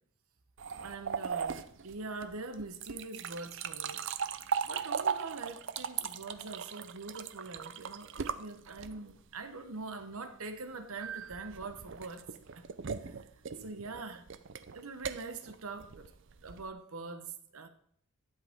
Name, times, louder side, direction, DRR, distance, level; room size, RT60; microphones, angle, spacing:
sound 1, 0.6-9.2 11.0-16.7, right 7 dB, 55° right, 0.5 m, -38 dB
voice 1, 0.8-4.0 4.6-13.2 13.6-14.3 14.7-16.1 16.4-17.7, right 3 dB, 75° right, 1.0 m, -44 dB
11.5 x 7.8 x 3.6 m
head